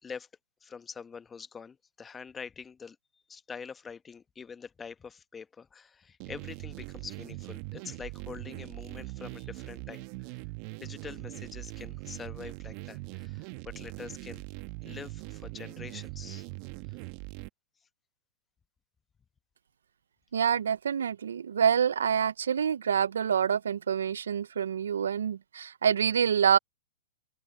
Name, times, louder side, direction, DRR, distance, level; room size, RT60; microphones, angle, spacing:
voice 1, 0.6-3.0 3.3-10.4 10.8-14.4 14.8-16.5 16.9-17.0, left 6 dB, 15° left, 1.1 m, -45 dB
sound 1, 6.2-17.5, right 25 dB, 45° right, 1.1 m, -41 dB
voice 2, 20.3-26.6, right 7 dB, 80° right, 0.5 m, -26 dB
open air
hypercardioid pair, 120°, 0 cm